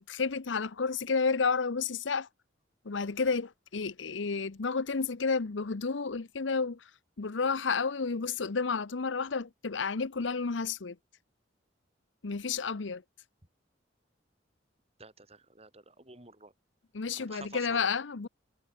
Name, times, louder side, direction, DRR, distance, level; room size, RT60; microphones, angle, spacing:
voice 1, 0.0-2.3 2.8-6.8 7.2-11.0 12.2-13.0 16.9-18.3, left 5 dB, 85° left, 0.8 m, -31 dB
voice 2, 15.0-16.5 17.2-17.9, right 4 dB, 35° right, 6.6 m, -50 dB
head